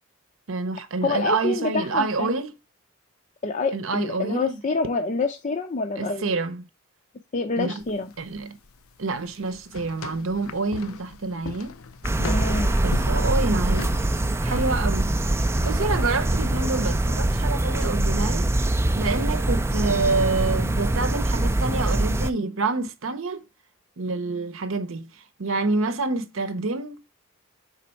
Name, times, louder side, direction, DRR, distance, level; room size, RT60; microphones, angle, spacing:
voice 1, 0.5-2.5 3.7-4.6 6.0-6.6 7.6-7.8 8.2-8.6 9.0-11.7 12.8-14.0 14.4-15.2 15.6-18.5 18.9-23.5 24.0-27.0, right 3 dB, 70° right, 0.8 m, -27 dB
voice 2, 1.0-2.3 3.4-6.3 7.3-8.1 12.3-12.8, left 3 dB, 35° left, 0.5 m, -27 dB
sound 1, 7.8-16.7, left 4 dB, 85° left, 0.6 m, -40 dB
sound 2, 12.0-22.3, right 1 dB, 10° right, 0.4 m, -23 dB
5.2 x 4.1 x 4.3 m
head